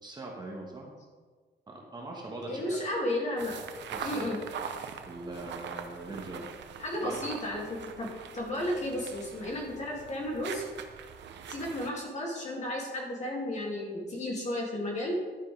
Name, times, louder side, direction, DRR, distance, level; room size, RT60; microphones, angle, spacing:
voice 1, 0.0-1.0 1.7-2.8 3.9-4.4 5.1-6.5 7.0-7.2, right 2 dB, 25° right, -1 dB, 1.4 m, -41 dB
voice 2, 2.5-3.6 4.0-4.4 6.8-10.6 11.5-15.1, left 1 dB, 40° left, -2 dB, 2.5 m, -33 dB
sound 1, 3.4-11.9, right 7 dB, 90° right, 0.9 m, -42 dB
11.5 x 9.7 x 3.4 m, 1.4 s
wide cardioid pair, 155°, 18 cm